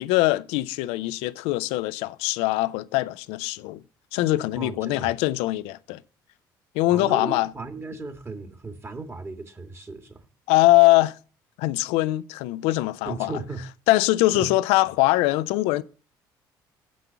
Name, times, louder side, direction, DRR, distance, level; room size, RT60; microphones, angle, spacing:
voice 1, 0.0-3.8 4.1-6.0 6.7-7.5 10.5-11.2 11.6-13.4 13.9-15.8, left 18 dB, 75° left, 0.5 m, -22 dB
voice 2, 4.6-5.1 6.9-10.3 13.1-13.6 14.3-14.5, right 3 dB, 25° right, 1.8 m, -36 dB
7.7 x 6.2 x 6.9 m
hypercardioid pair, 65°, 10 cm